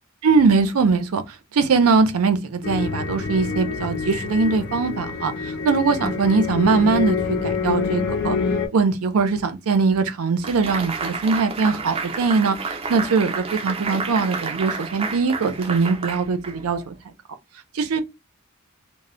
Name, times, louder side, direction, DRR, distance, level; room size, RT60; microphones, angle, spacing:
voice 1, 0.2-1.2 1.5-8.4 8.7-16.9 17.7-18.0, right 4 dB, 85° right, 0.5 m, -21 dB
sound 1, 2.6-8.7, left 5 dB, 50° left, 0.4 m, -26 dB
sound 2, 10.4-16.9, right 4 dB, 25° right, 0.4 m, -30 dB
2.1 x 2.0 x 3.7 m
head